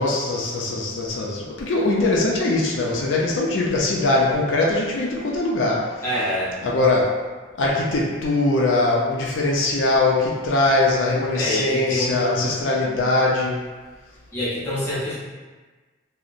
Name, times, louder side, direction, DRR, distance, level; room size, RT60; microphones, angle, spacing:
voice 1, 0.0-5.8 6.6-7.0 7.6-13.5, left 2 dB, 85° left, -3 dB, 0.5 m, -21 dB
voice 2, 6.0-6.6 11.3-12.6 14.3-15.1, left 1 dB, 10° left, -10 dB, 0.7 m, -26 dB
2.7 x 2.0 x 2.5 m, 1.3 s
head